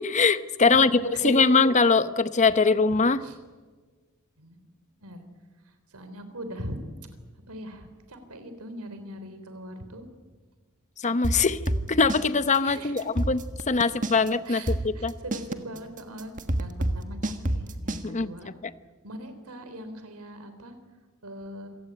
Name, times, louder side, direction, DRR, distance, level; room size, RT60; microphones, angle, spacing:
voice 1, 0.0-3.2 11.0-11.6 11.9-13.4 13.7-15.1 18.0-18.7, left 4 dB, 35° left, 14 dB, 0.8 m, -22 dB
voice 2, 0.6-1.6 3.2-3.4 4.4-4.6 5.0-5.2 5.9-6.8 7.5-10.0 12.6-13.1 14.4-16.3 16.6-18.5 19.0-20.7 21.2-21.7, right 1 dB, 85° right, 9 dB, 3.6 m, -39 dB
sound 1, 11.2-12.3 12.5-12.6 13.0-14.3 14.7-18.0, right 1 dB, 35° right, 1.6 m, -27 dB
27.0 x 17.5 x 8.8 m, 1.4 s
head